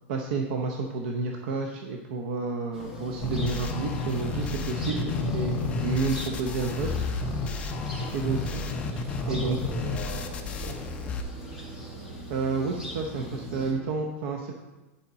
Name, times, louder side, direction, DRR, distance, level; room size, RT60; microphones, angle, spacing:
voice 1, 0.1-6.9 8.1-8.4 9.3-9.6 12.3-14.7, right 4 dB, 55° right, 2 dB, 0.7 m, -30 dB
sound 1, 2.7-13.7, left 2 dB, 5° right, 1.3 m, -39 dB
sound 2, 2.8-12.2, left 4 dB, 30° left, 1.6 m, -47 dB
sound 3, 3.2-11.2, left 3 dB, 15° left, 0.5 m, -31 dB
voice 2, 7.9-8.3 9.0-10.9, right 2 dB, 90° right, -2 dB, 2.6 m, -42 dB
9.4 x 5.1 x 4.1 m, 1.1 s
supercardioid pair, 170°, 7 cm